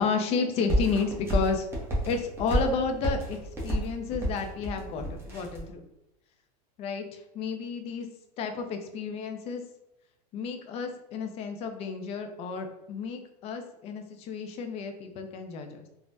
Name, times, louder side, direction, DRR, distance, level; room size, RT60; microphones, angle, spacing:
voice 1, 0.0-1.7 2.1-5.8 6.8-8.1 8.4-9.6 10.3-15.9, left 5 dB, 30° left, 6 dB, 0.4 m, -31 dB
sound 1, 0.7-5.7, right 1 dB, 10° right, 0.8 m, -30 dB
3.3 x 2.1 x 2.5 m, 0.88 s
supercardioid pair, 130°, 21 cm